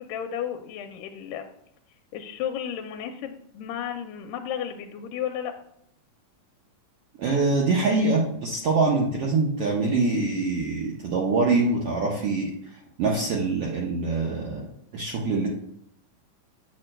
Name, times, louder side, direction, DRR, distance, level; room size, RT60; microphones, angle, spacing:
voice 1, 0.0-1.4 2.1-5.5, left 9 dB, 85° left, 5 dB, 2.2 m, -33 dB
voice 2, 7.2-12.5 13.0-14.6 14.9-15.5, right 3 dB, 70° right, -2 dB, 1.5 m, -24 dB
8.6 x 7.6 x 2.2 m, 0.71 s
omnidirectional pair, 3.7 m